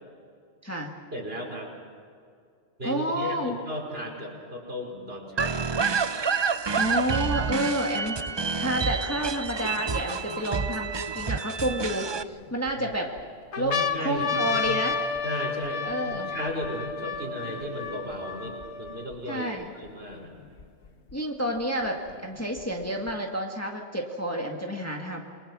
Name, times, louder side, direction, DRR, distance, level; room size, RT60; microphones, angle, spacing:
voice 1, 1.1-1.7 2.8-5.7 13.5-14.8 15.2-19.5 19.8-20.3, equal, 55° right, -1 dB, 5.2 m, -35 dB
voice 2, 2.8-3.5 6.7-8.2 8.6-13.1 13.6-15.0 15.8-16.3 19.3-19.7 21.1-25.2, equal, 10° left, 1 dB, 1.9 m, -29 dB
sound 1, 5.4-12.2, right 5 dB, 35° right, 0.4 m, -28 dB
sound 2, 9.2-9.3 10.0-11.2 11.9-12.7 13.2-13.3 13.5-19.2 19.9-20.0 20.1-21.1 22.1-23.1, left 5 dB, 70° left, 1.5 m, -32 dB
28.5 x 22.5 x 6.3 m, 2.2 s
omnidirectional pair, 1.2 m